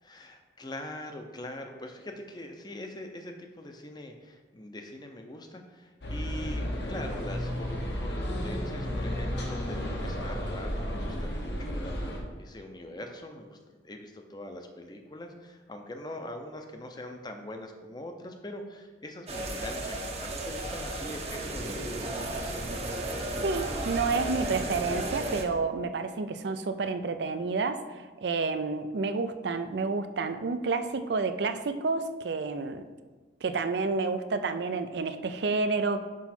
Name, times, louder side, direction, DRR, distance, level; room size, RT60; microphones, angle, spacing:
voice 1, 0.0-22.7, left 1 dB, 20° left, 4 dB, 0.6 m, -43 dB
sound 1, 6.0-12.2, equal, 70° left, 1.2 m, -33 dB
sound 2, 19.3-25.4, right 1 dB, 35° right, 0.7 m, -34 dB
voice 2, 23.4-27.8 28.2-32.9 33.4-36.0, right 4 dB, 65° right, 10 dB, 0.4 m, -29 dB
6.1 x 5.6 x 4.3 m, 1.4 s
head